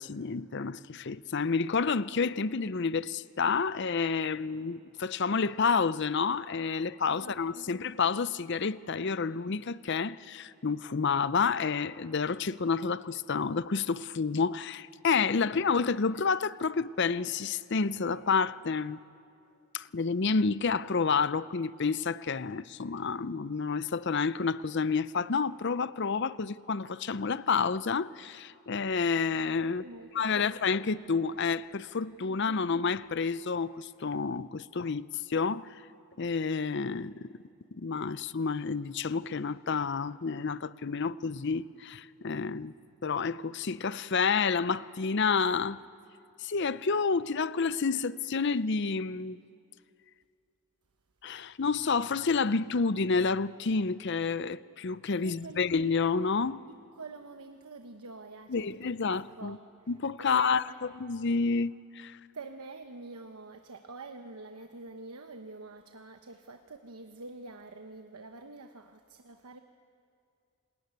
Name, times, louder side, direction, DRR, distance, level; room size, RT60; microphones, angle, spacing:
voice 1, 0.0-19.0 19.7-29.8 30.1-35.7 36.2-37.3 37.7-42.7 43.0-45.8 46.4-49.4 51.2-56.6 58.5-59.6 59.9-60.6 61.0-62.2, left 5 dB, 50° left, 0.6 m, -29 dB
voice 2, 7.1-7.7 29.6-30.7 32.3-32.7 55.2-55.7 56.7-59.6 60.2-60.8 62.3-69.6, right 3 dB, 85° right, 1.1 m, -47 dB
28.5 x 20.0 x 9.4 m
head